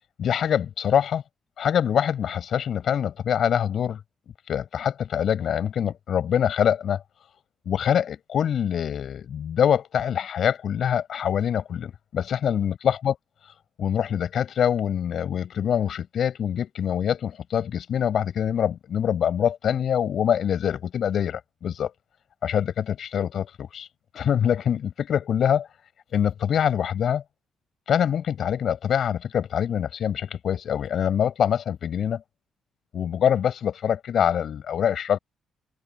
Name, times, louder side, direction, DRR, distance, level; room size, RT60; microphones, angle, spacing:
voice 1, 0.2-1.2 1.6-4.0 4.5-7.0 7.7-13.1 13.8-21.9 22.4-23.9 24.1-25.7 26.1-27.2 27.9-32.2 32.9-35.2, left 9 dB, 60° left, 7.8 m, -24 dB
cardioid pair, 90°, 0 cm